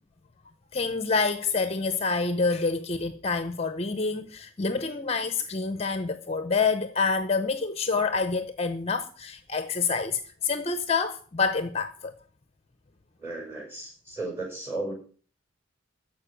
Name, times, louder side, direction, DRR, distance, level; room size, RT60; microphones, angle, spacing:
voice 1, 0.7-12.1, left 4 dB, 30° left, 0.7 m, -27 dB
voice 2, 13.2-14.9, right 2 dB, 10° right, 6.0 m, -35 dB
14.0 x 5.4 x 8.7 m
head